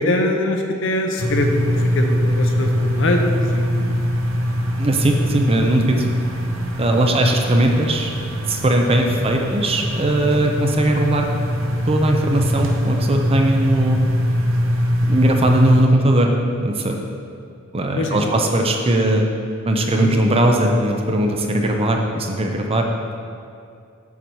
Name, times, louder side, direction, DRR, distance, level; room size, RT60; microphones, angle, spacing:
voice 1, 0.0-4.0 6.7-7.1 18.0-18.3 19.9-20.1, left 1 dB, 65° left, 3 dB, 0.8 m, -23 dB
sound 1, 1.2-15.8, equal, 75° right, 0.7 m, -22 dB
voice 2, 4.8-6.1 6.8-8.1 8.4-11.3 11.9-14.0 15.1-16.3 16.6-17.0 17.7-19.2 19.6-22.9, right 1 dB, 30° right, 2 dB, 0.6 m, -19 dB
7.3 x 5.8 x 4.7 m, 2.4 s
head